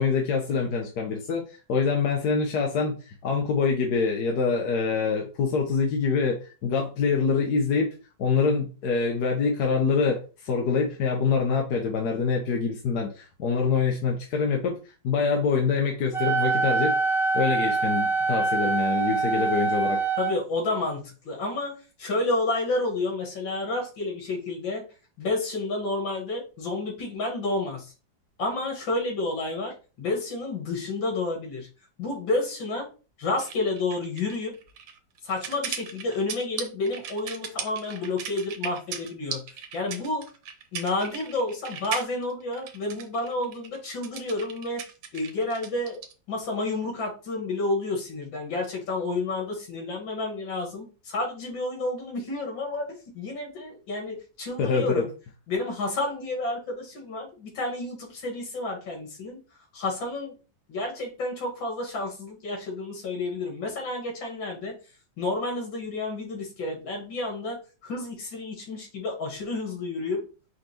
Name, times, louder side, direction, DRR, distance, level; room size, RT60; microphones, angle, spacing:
voice 1, 0.0-16.9 17.3-20.0 54.6-55.0, left 5 dB, 65° left, 1 dB, 1.2 m, -25 dB
Wind instrument woodwind instrument, 16.1-20.3, right 4 dB, 5° right, 0.5 m, -24 dB
voice 2, 20.2-24.9 25.2-27.9 28.4-31.7 32.0-32.9 33.2-34.6 35.2-39.4 39.7-40.3 40.7-44.8 45.1-46.0 46.3-52.9 53.1-55.1 55.5-59.4 59.7-60.3 60.7-64.8 65.2-70.3, left 2 dB, 80° left, 1 dB, 2.4 m, -30 dB
sound 1, 33.4-46.1, right 7 dB, 85° right, 1.5 m, -38 dB
5.1 x 3.6 x 2.9 m, 0.34 s
omnidirectional pair, 2.1 m